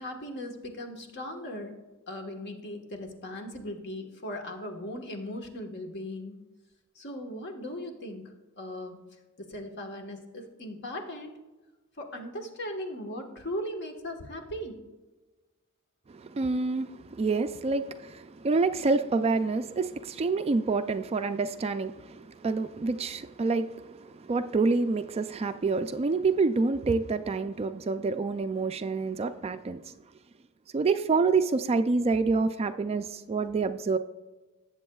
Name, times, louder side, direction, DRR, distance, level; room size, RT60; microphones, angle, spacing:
voice 1, 0.0-1.7 2.1-6.4 6.9-8.3 8.6-9.0 9.4-11.3 12.0-14.8, left 1 dB, 50° left, 3 dB, 1.3 m, -38 dB
voice 2, 16.1-29.9 30.7-34.0, right 4 dB, 25° right, 10 dB, 0.3 m, -27 dB
18.5 x 8.0 x 2.3 m, 1.2 s
head